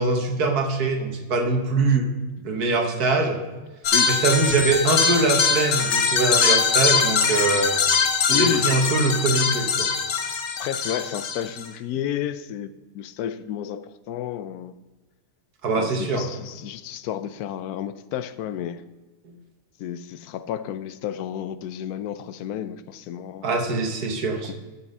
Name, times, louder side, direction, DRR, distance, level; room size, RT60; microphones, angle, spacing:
voice 1, 0.0-2.1 2.4-3.4 4.1-7.8 8.3-9.9 15.6-16.3 19.2-19.3 23.4-24.5, right 3 dB, 90° right, 4 dB, 1.9 m, -23 dB
sound 1, 3.8-11.6, left 5 dB, 55° left, 1.2 m, -22 dB
voice 2, 8.3-8.7 10.6-14.7 15.8-18.8 19.8-23.5 24.4-24.5, left 10 dB, 80° left, 14 dB, 1.1 m, -31 dB
13.5 x 5.7 x 5.5 m, 1.2 s
omnidirectional pair, 1.6 m